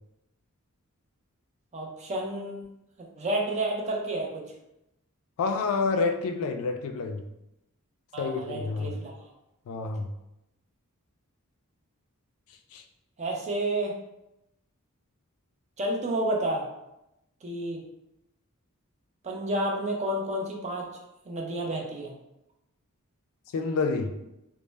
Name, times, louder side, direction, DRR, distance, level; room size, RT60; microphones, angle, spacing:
voice 1, 1.7-2.6 3.2-4.4 8.1-9.1 13.2-14.0 15.8-16.7 17.4-17.8 19.2-20.9 21.3-22.1, right 1 dB, 30° right, 0 dB, 0.4 m, -30 dB
voice 2, 5.4-7.2 8.2-9.0 9.7-10.1 12.7-12.8 23.5-24.1, left 4 dB, 70° left, 7 dB, 0.3 m, -28 dB
2.0 x 2.0 x 3.2 m, 0.88 s
head